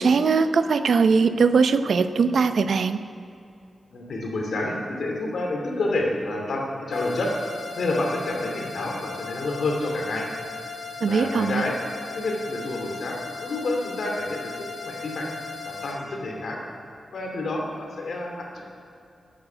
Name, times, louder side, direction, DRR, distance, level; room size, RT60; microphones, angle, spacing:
voice 1, 0.0-3.0 11.0-11.6, right 5 dB, 65° right, 10 dB, 0.7 m, -20 dB
voice 2, 3.9-7.3 7.7-10.2 11.1-11.8 12.1-15.3 15.6-16.6 17.1-18.6, left 2 dB, 70° left, 0 dB, 2.6 m, -29 dB
sound 1, 6.9-15.9, left 4 dB, 45° left, 3.3 m, -37 dB
14.0 x 9.5 x 8.8 m, 2.6 s
wide cardioid pair, 180°, 0 cm